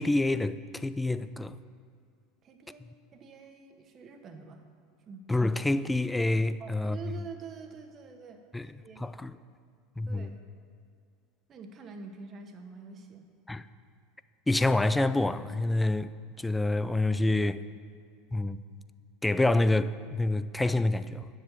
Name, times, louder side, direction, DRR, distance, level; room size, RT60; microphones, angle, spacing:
voice 1, 0.0-1.6 5.3-7.0 8.5-8.7 9.0-9.3 10.0-10.3 13.5-13.7 14.5-16.1 16.4-17.6 18.3-18.6 19.2-21.3, left 2 dB, 10° left, 0.4 m, -27 dB
voice 2, 2.4-2.9 3.1-4.6 5.1-5.3 6.6-9.1 10.1-10.4 11.5-13.3, right 5 dB, 35° right, 1.3 m, -46 dB
9.2 x 7.5 x 6.7 m
figure-of-eight pair, 75°, 0 cm